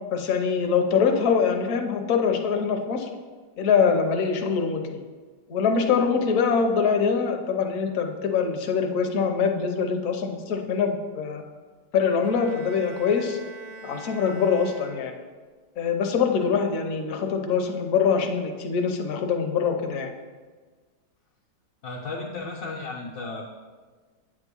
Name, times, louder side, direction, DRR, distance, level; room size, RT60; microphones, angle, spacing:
voice 1, 0.1-3.1 3.6-5.0 5.5-11.4 11.9-13.4 13.8-15.2 15.8-20.1, left 6 dB, 55° left, 4 dB, 1.1 m, -24 dB
Bowed string instrument, 12.2-15.5, right 3 dB, 70° right, 1.1 m, -43 dB
voice 2, 21.8-23.4, left 3 dB, 75° left, -4 dB, 1.6 m, -34 dB
8.4 x 3.6 x 6.8 m, 1.4 s
omnidirectional pair, 1.9 m